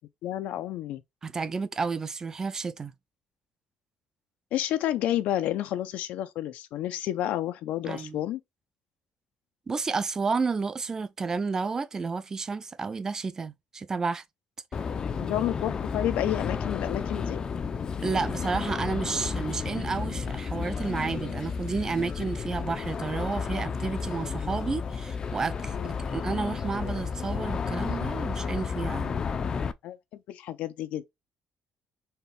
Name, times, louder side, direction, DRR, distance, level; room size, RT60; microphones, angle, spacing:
voice 1, 0.2-1.0 4.5-8.4 15.2-17.4 25.7-26.0 29.8-31.1, left 12 dB, 90° left, 0.6 m, -30 dB
voice 2, 1.2-2.9 7.9-8.2 9.7-14.2 18.0-29.2, right 4 dB, 25° right, 0.5 m, -31 dB
sound 1, 14.7-29.7, left 5 dB, 30° left, 0.4 m, -32 dB
4.4 x 3.3 x 3.3 m
cardioid pair, 155°, 2 cm